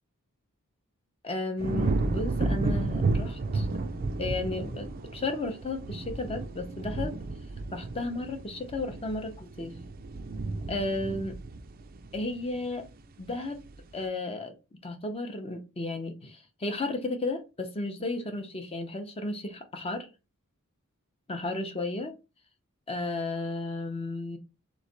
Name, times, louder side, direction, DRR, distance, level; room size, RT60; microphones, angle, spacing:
voice 1, 1.2-3.7 4.2-7.1 7.7-9.7 10.7-11.4 12.1-12.9 13.2-13.6 13.9-14.5 14.8-20.1 21.3-22.1 22.9-24.4, left 2 dB, 25° left, 5 dB, 0.7 m, -33 dB
sound 1, 1.6-12.9 13.3-13.8, right 3 dB, 40° right, 0.4 m, -32 dB
3.5 x 3.2 x 3.9 m, 0.29 s
head